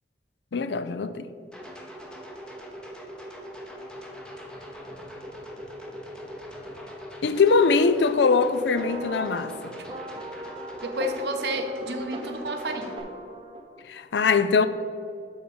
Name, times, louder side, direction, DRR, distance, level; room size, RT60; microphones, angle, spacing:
voice 1, 0.5-1.3 7.2-9.7 13.9-14.7, left 4 dB, 70° left, 0.4 m, -22 dB
sound 1, 1.5-13.0, equal, 5° left, 0.8 m, -41 dB
sound 2, 8.7-13.8, right 1 dB, 30° right, 0.5 m, -39 dB
voice 2, 10.8-13.0, right 1 dB, 65° right, 0.8 m, -31 dB
7.7 x 4.1 x 6.8 m
head